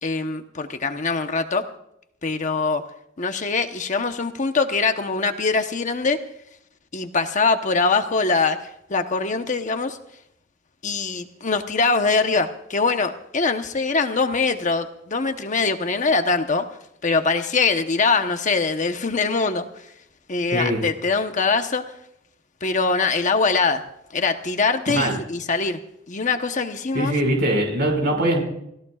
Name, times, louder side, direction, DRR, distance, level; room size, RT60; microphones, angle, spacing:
voice 1, 0.0-1.7 2.2-2.8 3.2-6.2 6.9-10.0 10.8-16.7 17.0-19.9 20.3-21.8 22.6-23.8 24.1-25.8 26.1-27.1, left 4 dB, 40° left, 6 dB, 1.0 m, -23 dB
voice 2, 20.5-20.8 24.9-25.1 26.9-28.4, right 1 dB, 55° right, 2 dB, 5.6 m, -21 dB
30.0 x 17.0 x 2.4 m, 0.78 s
head